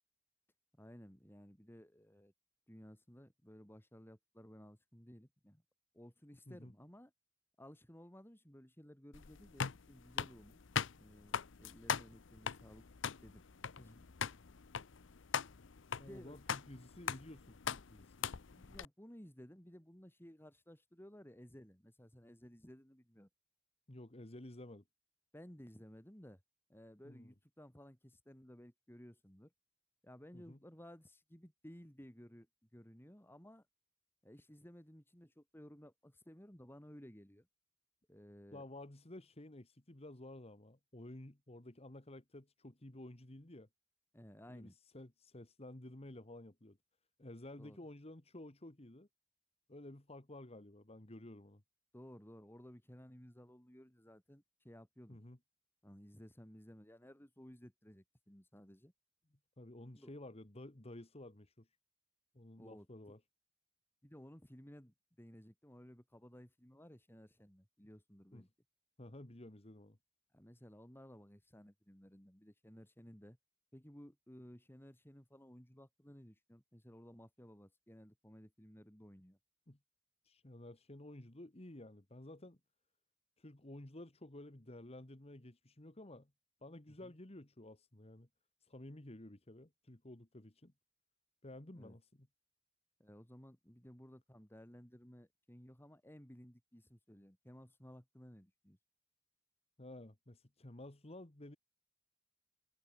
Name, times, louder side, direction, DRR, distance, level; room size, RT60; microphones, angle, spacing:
voice 1, 0.7-2.3 2.7-5.6 5.9-7.1 7.6-10.6 11.0-12.8 13.2-13.4 13.9-14.1 16.0-16.4 18.5-23.3 25.3-26.4 26.7-29.5 30.0-32.5 32.7-33.6 34.2-37.5 38.1-38.6 44.1-44.7 47.6-47.8 51.9-55.2 55.8-58.9 59.9-60.1 62.6-63.1 64.0-68.5 70.3-73.4 73.7-79.4 87.0-87.1 91.7-92.0 93.0-98.8, equal, 10° left, 3.2 m, -57 dB
sound 1, 9.1-18.9, left 7 dB, 70° left, 0.7 m, -41 dB
voice 2, 15.9-18.2 23.9-24.8 27.0-27.3 30.3-30.6 38.5-43.7 44.5-46.8 47.2-49.1 49.7-51.6 55.1-55.4 59.6-61.7 62.3-63.2 68.3-68.4 69.0-70.0 79.7-79.8 80.2-82.6 83.4-86.3 86.6-88.3 88.6-90.7 91.4-92.3 99.8-101.6, left 1 dB, 35° left, 1.7 m, -53 dB
head